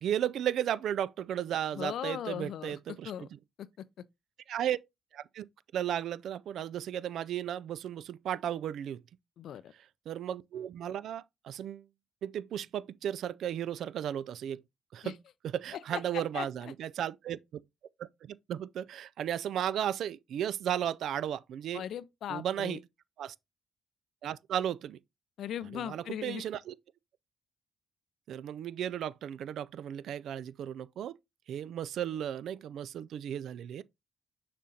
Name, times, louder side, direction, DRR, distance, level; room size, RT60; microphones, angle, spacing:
voice 1, 0.0-3.1 4.5-4.8 5.1-5.4 5.7-9.0 10.1-11.9 12.2-14.6 14.9-15.2 15.4-17.4 18.0-21.8 22.3-22.8 23.2-23.3 24.2-25.0 25.7-26.7 28.3-31.1 31.5-33.8, right 10 dB, 70° right, 0.3 m, -34 dB
voice 2, 1.7-3.3 3.6-4.0 9.4-9.7 15.0-15.1 15.9-16.7 21.7-22.8 25.4-26.4, left 10 dB, 65° left, 0.4 m, -39 dB
6.7 x 5.1 x 2.8 m
hypercardioid pair, 45°, 0 cm